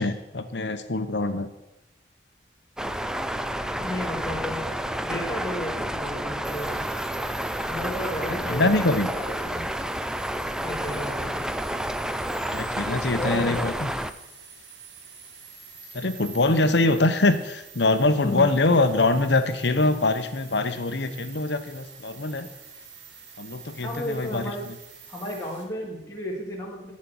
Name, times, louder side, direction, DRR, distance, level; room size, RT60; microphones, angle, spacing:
voice 1, 0.0-1.5 8.5-9.1 12.5-13.9 15.9-22.5 23.4-24.7, left 2 dB, 65° left, 9 dB, 0.9 m, -23 dB
sound 1, 2.8-14.1, right 1 dB, 5° right, 0.4 m, -30 dB
voice 2, 3.7-4.7 5.0-6.8 7.7-9.7 10.6-11.5 13.2-13.8 18.2-18.5 23.8-24.7 25.1-26.9, left 1 dB, 15° left, -3 dB, 2.0 m, -33 dB
sound 2, 6.4-25.6, right 5 dB, 70° right, 2.0 m, -47 dB
8.5 x 7.4 x 7.8 m, 0.91 s
head